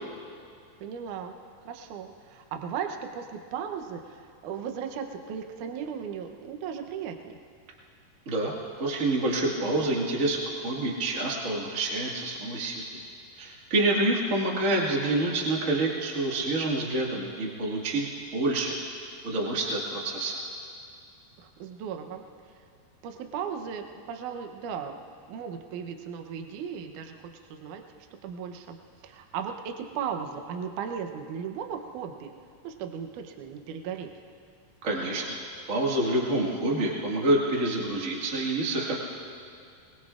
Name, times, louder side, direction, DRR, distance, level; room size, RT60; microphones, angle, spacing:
voice 1, 0.8-7.4 21.4-22.2 23.0-25.0 25.3-27.8 28.2-28.8 29.0-32.3 32.6-34.1, right 7 dB, 85° right, 5 dB, 1.8 m, -36 dB
voice 2, 8.2-12.8 13.4-20.4 34.8-35.4 35.7-38.9, right 2 dB, 55° right, -3 dB, 0.8 m, -27 dB
22.5 x 21.0 x 2.5 m, 2.4 s
omnidirectional pair, 4.9 m